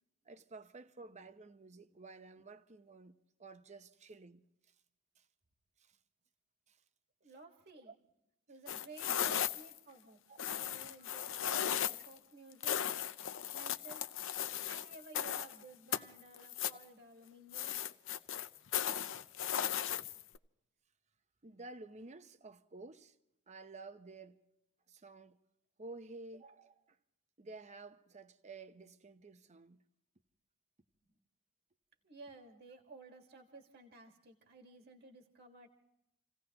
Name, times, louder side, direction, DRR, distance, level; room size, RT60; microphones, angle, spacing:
voice 1, 0.2-4.4 5.2-5.3 5.8-6.0 6.7-6.8 7.9-8.0 10.3-10.4 11.9-12.0 16.7-16.8 21.4-23.2 23.5-24.4 24.9-25.4 25.8-27.0 27.4-29.8, right 3 dB, 35° right, 0.8 m, -52 dB
voice 2, 7.2-7.9 8.5-12.8 13.5-14.0 14.6-17.9 32.0-35.7, right 3 dB, 50° right, 1.7 m, -55 dB
sound 1, 8.7-9.8 10.4-12.1 12.6-15.6 15.9-16.8 17.5-20.4, left 9 dB, 65° left, 0.6 m, -36 dB
29.0 x 16.5 x 2.9 m
head